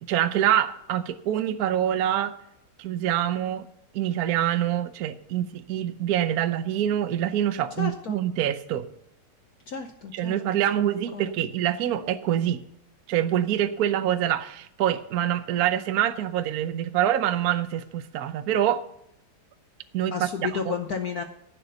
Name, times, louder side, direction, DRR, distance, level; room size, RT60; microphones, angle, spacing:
voice 1, 0.0-2.3 2.8-3.7 3.9-8.9 10.1-12.6 13.1-18.8 19.9-20.5, right 11 dB, 65° right, 10 dB, 0.9 m, -25 dB
voice 2, 7.8-8.2 9.7-10.4 10.7-11.3 20.1-21.2, left 6 dB, 60° left, 6 dB, 1.0 m, -32 dB
11.0 x 7.9 x 6.7 m, 0.75 s
omnidirectional pair, 2.4 m